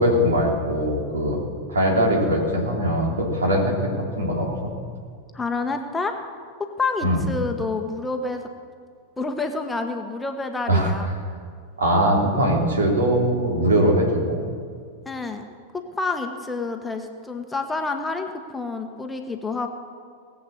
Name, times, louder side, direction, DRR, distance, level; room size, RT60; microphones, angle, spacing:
voice 1, 0.0-1.4 1.7-3.8 4.2-4.7 7.0-7.2 10.7-10.9 11.8-14.4, equal, 70° right, 0 dB, 3.1 m, -21 dB
voice 2, 5.3-6.1 6.8-8.4 9.2-11.1 15.0-15.4 15.7-19.7, left 3 dB, 10° left, 5 dB, 1.1 m, -28 dB
19.5 x 7.8 x 7.2 m, 2.1 s
figure-of-eight pair, 90°, 0 cm